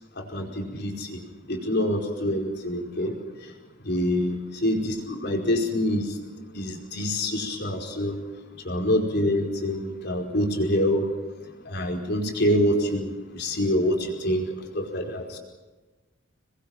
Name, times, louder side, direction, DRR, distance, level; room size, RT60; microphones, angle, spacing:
voice 1, 0.2-1.2 1.5-3.2 3.4-3.5 3.8-6.2 6.5-8.2 8.6-11.1 11.6-15.4, left 1 dB, 55° left, 2 dB, 4.9 m, -26 dB
27.5 x 21.5 x 6.0 m, 1.2 s
head